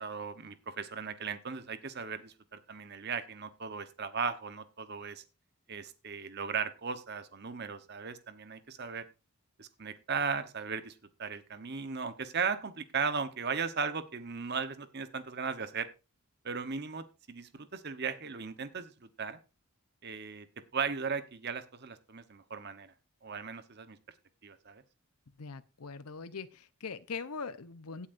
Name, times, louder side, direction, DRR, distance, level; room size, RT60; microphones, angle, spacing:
voice 1, 0.0-5.2 5.7-9.0 9.6-15.9 16.4-19.4 20.0-20.5 20.7-22.9 23.2-24.0 24.4-24.8, right 5 dB, 45° right, 1.1 m, -37 dB
voice 2, 25.4-28.1, left 5 dB, 85° left, 0.8 m, -41 dB
16.5 x 8.5 x 2.6 m
head